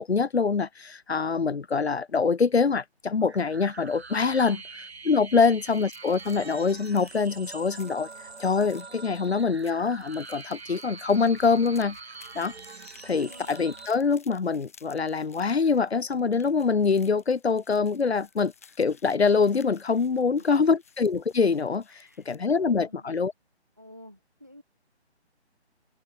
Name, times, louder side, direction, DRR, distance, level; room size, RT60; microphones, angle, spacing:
voice 1, 0.0-4.6 5.0-8.1 8.4-12.0 12.3-12.5 13.0-18.5 18.8-23.3, left 5 dB, 70° left, 0.7 m, -24 dB
sound 1, 3.2-13.9, right 4 dB, 70° right, 1.1 m, -44 dB
sound 2, 5.2-22.6, left 6 dB, 15° left, 0.9 m, -57 dB
voice 2, 13.1-13.6 20.1-20.5 21.9-23.1 23.8-24.6, left 1 dB, 15° right, 0.6 m, -50 dB
figure-of-eight pair, 150°, 34 cm